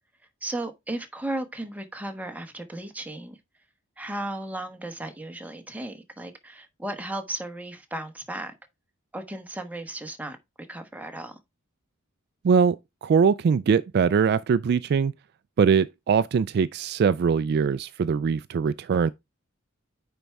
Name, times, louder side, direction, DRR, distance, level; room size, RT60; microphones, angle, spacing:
voice 1, 0.4-3.4 4.0-8.5 9.1-10.4 10.7-11.4, right 1 dB, 10° right, 1.1 m, -35 dB
voice 2, 12.4-12.8 13.0-15.1 15.6-19.1, right 6 dB, 55° right, 0.3 m, -22 dB
9.3 x 4.5 x 3.4 m
head